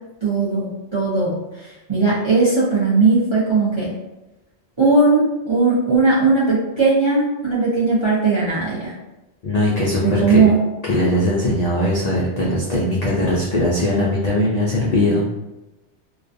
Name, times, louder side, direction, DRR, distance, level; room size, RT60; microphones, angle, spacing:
voice 1, 0.2-1.3 1.9-3.9 4.8-8.9 10.0-10.6, right 3 dB, 40° right, -8 dB, 0.4 m, -18 dB
voice 2, 9.4-10.4 10.8-15.3, left 1 dB, 65° left, -5 dB, 0.4 m, -20 dB
2.3 x 2.2 x 2.5 m, 1.0 s
omnidirectional pair, 1.2 m